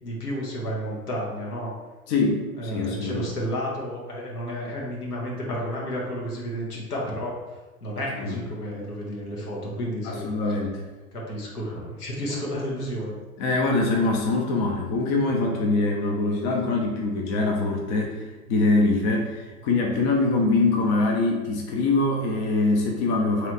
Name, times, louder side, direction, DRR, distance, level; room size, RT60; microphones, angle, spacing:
voice 1, 0.0-1.7 2.5-10.3 11.1-13.2, equal, 85° left, -3 dB, 1.4 m, -31 dB
voice 2, 2.1-3.3 8.2-8.4 10.0-10.8 13.4-23.5, left 3 dB, 45° left, 0 dB, 0.8 m, -23 dB
3.2 x 3.1 x 4.0 m, 1.2 s
hypercardioid pair, 100°, 45 cm